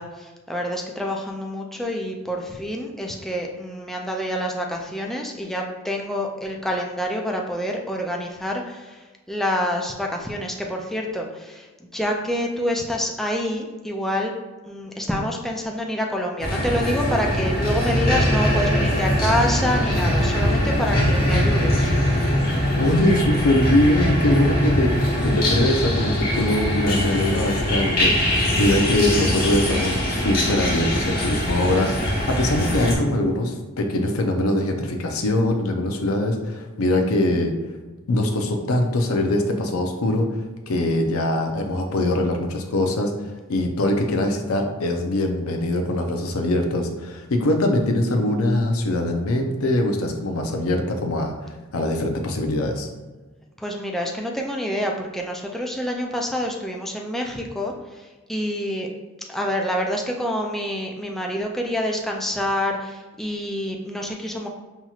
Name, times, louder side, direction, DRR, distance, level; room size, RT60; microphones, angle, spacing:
voice 1, 0.0-14.3 14.7-21.9 53.6-58.9 59.3-64.5, equal, ahead, 0 dB, 0.3 m, -27 dB
sound 1, 16.4-32.9, left 1 dB, 45° left, 1.1 m, -22 dB
voice 2, 22.8-37.5 38.1-40.3 40.7-51.3 51.7-52.9, left 1 dB, 80° left, 4 dB, 0.6 m, -22 dB
5.6 x 2.9 x 2.4 m, 1.2 s
head